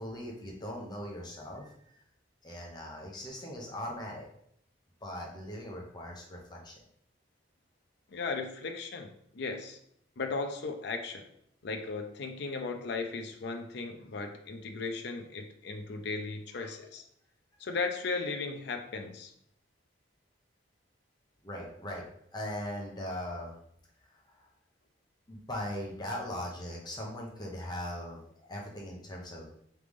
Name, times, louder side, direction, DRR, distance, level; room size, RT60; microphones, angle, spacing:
voice 1, 0.0-2.0 2.4-4.3 5.0-6.8 21.4-22.0 22.3-23.5 24.1-24.5 25.3-29.5, left 1 dB, 25° left, -2 dB, 0.8 m, -40 dB
voice 2, 8.1-9.8 10.2-11.3 11.6-17.0 17.6-19.3, left 4 dB, 65° left, 5 dB, 0.5 m, -36 dB
3.8 x 3.3 x 3.5 m, 0.70 s
head